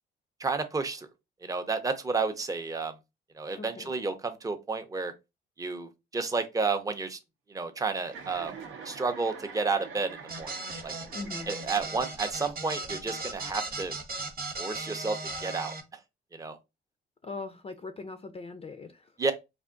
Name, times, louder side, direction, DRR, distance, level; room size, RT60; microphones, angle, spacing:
voice 1, 0.4-1.1 1.4-2.9 3.4-5.1 5.6-7.2 7.5-8.5 8.8-10.5 10.8-10.9 11.5-13.9 14.6-16.0 16.3-16.6 19.2-19.3, right 4 dB, 15° right, 0.5 m, -31 dB
voice 2, 3.6-3.9 11.1-11.5 17.2-19.1, left 3 dB, 30° left, 0.4 m, -40 dB
Chuckle chortle, 8.0-12.1, right 5 dB, 80° right, 0.6 m, -45 dB
sound 1, 10.3-15.8, right 3 dB, 50° right, 0.8 m, -37 dB
3.4 x 2.5 x 2.5 m
cardioid pair, 90°, 20 cm